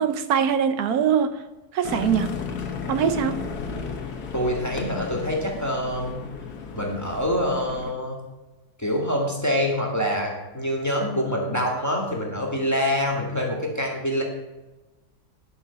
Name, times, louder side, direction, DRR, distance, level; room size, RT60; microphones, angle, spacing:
voice 1, 0.0-1.4 1.7-2.3 2.9-3.5, right 8 dB, 80° right, 1.3 m, -22 dB
sound 1, 1.8-7.9, left 5 dB, 85° left, 1.7 m, -34 dB
voice 2, 4.3-6.2 6.7-8.2 8.8-14.2, equal, 10° left, 1.8 m, -25 dB
11.5 x 5.7 x 6.9 m
omnidirectional pair, 1.6 m